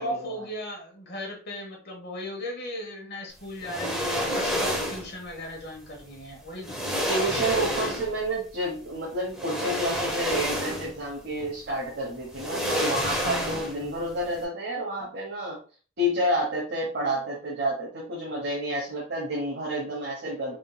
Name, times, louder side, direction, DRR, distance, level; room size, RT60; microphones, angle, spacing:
voice 1, 0.0-6.8 13.2-14.1, left 1 dB, 55° left, 0 dB, 1.2 m, -37 dB
sound 1, 3.6-5.1 6.2-6.3 6.6-8.2 9.3-11.0 11.4-11.5 12.3-13.9 14.2-14.4, equal, 5° right, 0.8 m, -29 dB
voice 2, 7.1-15.6 16.0-20.6, right 1 dB, 60° right, -4 dB, 1.1 m, -29 dB
3.7 x 3.7 x 2.3 m, 0.37 s
head